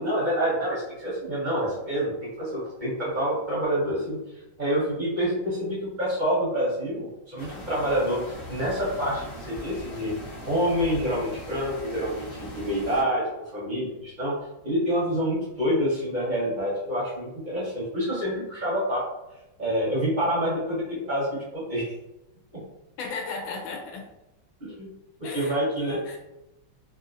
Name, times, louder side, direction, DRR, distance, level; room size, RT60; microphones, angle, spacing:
voice 1, 0.0-2.1 2.4-4.2 4.6-10.1 10.4-14.4 14.6-19.0 19.6-21.9 22.5-22.6 24.6-24.9 25.3-26.0, equal, 35° right, -7 dB, 0.7 m, -27 dB
sound 1, 7.4-13.0, equal, 40° left, 1.0 m, -41 dB
voice 2, 23.0-24.0 25.2-26.2, left 4 dB, 80° left, 0 dB, 1.4 m, -35 dB
3.5 x 2.5 x 2.6 m, 0.93 s
omnidirectional pair, 2.2 m